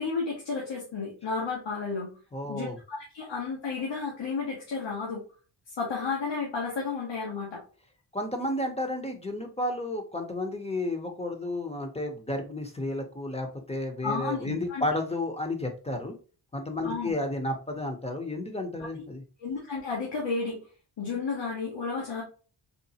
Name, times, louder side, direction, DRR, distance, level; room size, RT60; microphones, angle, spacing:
voice 1, 0.0-2.2 2.5-5.2 5.8-7.6 14.0-14.9 16.8-17.1 18.8-19.0 19.4-20.6 21.0-22.2, left 4 dB, 85° left, -3 dB, 1.3 m, -32 dB
voice 2, 2.3-2.8 8.1-16.2 16.5-19.2, left 1 dB, 15° left, 4 dB, 0.7 m, -32 dB
4.1 x 3.1 x 2.8 m, 0.37 s
wide cardioid pair, 135°, 43 cm